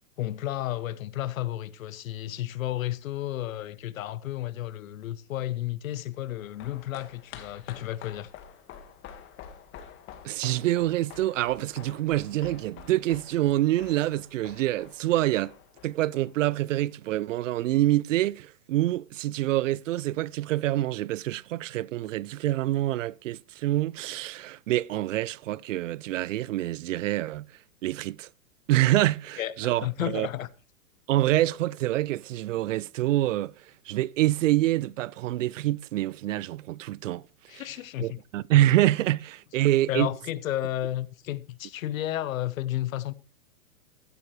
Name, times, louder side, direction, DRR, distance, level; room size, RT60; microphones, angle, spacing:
voice 1, 0.2-8.3 29.4-30.5 37.5-38.2 39.9-43.1, left 13 dB, 65° left, 1.1 m, -32 dB
sound 1, 6.3-16.8 17.1-17.2, left 9 dB, 30° left, 1.8 m, -48 dB
voice 2, 10.2-15.5 15.8-27.5 27.8-28.3 28.7-30.3 31.1-33.5 33.9-37.2 37.5-37.6 38.0-40.1, right 15 dB, 60° right, 0.5 m, -26 dB
15.0 x 12.0 x 3.2 m
hypercardioid pair, 140°, 43 cm